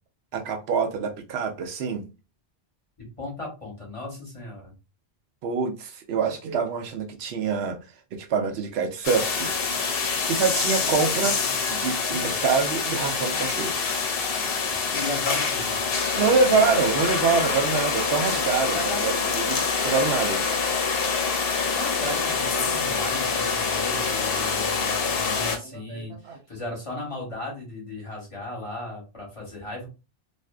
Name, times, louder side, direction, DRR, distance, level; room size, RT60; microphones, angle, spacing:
voice 1, 0.3-2.1 5.4-7.8 8.1-9.8 10.3-11.4 11.7-13.7 16.2-18.8 19.0-20.4 25.4-26.4, right 5 dB, 80° right, 0.8 m, -26 dB
voice 2, 3.0-4.7 10.8-10.9 11.2-11.5 14.7-15.8 18.7-19.1 21.7-29.9, left 2 dB, 35° left, 0.9 m, -36 dB
sound 1, 9.0-25.6, left 5 dB, 70° left, 0.8 m, -26 dB
2.5 x 2.4 x 2.3 m
omnidirectional pair, 1.1 m